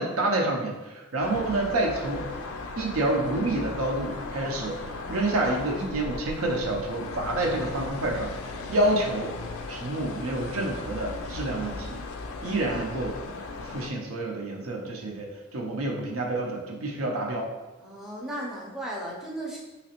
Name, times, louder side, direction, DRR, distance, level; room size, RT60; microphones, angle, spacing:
voice 1, 0.0-2.3 2.8-4.8 5.1-8.3 8.7-9.3 9.7-12.0 12.4-13.1 13.6-17.5, right 2 dB, 80° right, 0 dB, 0.6 m, -28 dB
sound 1, 1.2-13.9, left 3 dB, 80° left, 0.4 m, -37 dB
voice 2, 17.8-19.6, right 1 dB, ahead, -5 dB, 0.5 m, -36 dB
3.2 x 2.9 x 2.9 m, 1.1 s
head